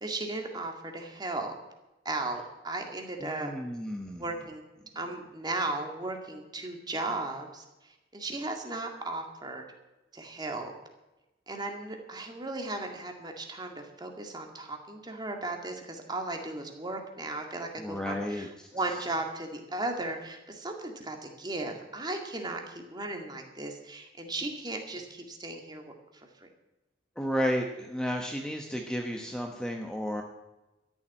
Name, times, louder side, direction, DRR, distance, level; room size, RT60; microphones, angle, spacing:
voice 1, 0.0-1.5 2.1-3.5 4.2-4.6 5.0-9.6 10.1-10.7 11.5-25.9 26.4-26.5, right 2 dB, 25° right, 3 dB, 2.1 m, -36 dB
voice 2, 3.2-4.2 17.8-18.5 27.2-30.2, equal, 5° left, 2 dB, 1.0 m, -32 dB
13.5 x 7.3 x 10.0 m, 1.0 s
head